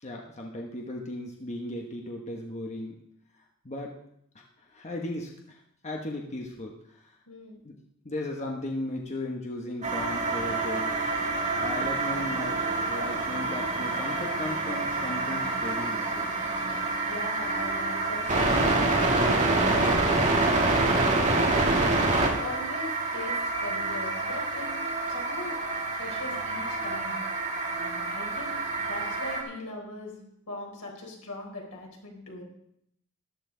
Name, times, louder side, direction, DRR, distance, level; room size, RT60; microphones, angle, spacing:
voice 1, 0.0-3.0 3.6-4.0 4.3-4.4 4.7-7.1 7.6-7.8 8.0-11.2 11.6-12.6 12.9-16.3, left 1 dB, 30° left, 0 dB, 1.1 m, -36 dB
voice 2, 7.3-7.6 17.0-21.3 22.1-24.7 25.1-25.6 26.0-27.2 27.7-28.6 28.9-30.1 30.5-32.4, left 2 dB, 85° left, 0 dB, 4.0 m, -40 dB
sound 1, 9.8-29.4, right 2 dB, 30° right, 1.9 m, -27 dB
sound 2, 10.1-16.9, equal, 5° left, 3.7 m, -46 dB
14.0 x 11.5 x 3.8 m, 0.74 s
head